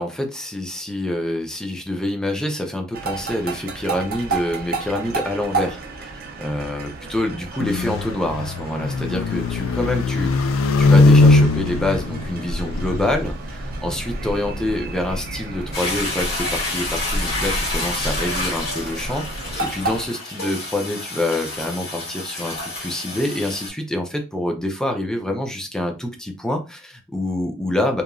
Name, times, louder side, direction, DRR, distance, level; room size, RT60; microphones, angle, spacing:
voice 1, 0.0-19.2 19.6-28.0, left 1 dB, 5° left, 3 dB, 0.4 m, -26 dB
sound 1, 2.9-20.1, right 2 dB, 50° right, 0.5 m, -31 dB
sound 2, 7.6-13.1, left 3 dB, 70° left, 0.3 m, -19 dB
Toilet flush, 15.7-23.7, left 2 dB, 50° left, 1.4 m, -29 dB
3.0 x 2.4 x 2.2 m, 0.29 s
head